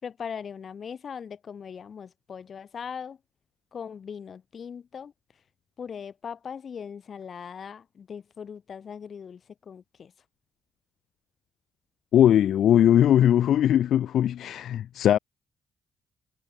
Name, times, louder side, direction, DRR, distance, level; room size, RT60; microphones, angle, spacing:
voice 1, 0.0-3.2 3.7-5.1 5.8-9.4 9.7-10.1, left 7 dB, 55° left, 4.7 m, -39 dB
voice 2, 12.1-15.2, left 10 dB, 80° left, 0.5 m, -20 dB
cardioid pair, 85°, 0 cm